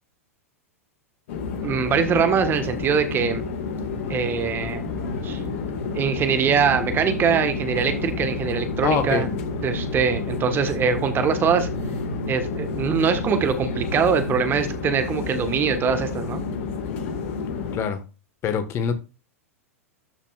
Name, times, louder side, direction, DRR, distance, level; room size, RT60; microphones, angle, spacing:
sound 1, 1.3-17.8, left 5 dB, 55° left, 1.9 m, -30 dB
voice 1, 1.6-3.4 4.1-4.8 5.2-5.4 5.9-9.3 9.6-11.7 12.3-16.4, right 6 dB, 25° right, 1.5 m, -23 dB
sound 2, 5.0-17.2, right 3 dB, 90° right, 1.1 m, -37 dB
voice 2, 8.8-9.3 17.7-18.0 18.4-18.9, left 7 dB, 35° left, 1.5 m, -24 dB
13.0 x 5.8 x 2.5 m
figure-of-eight pair, 95°, 8 cm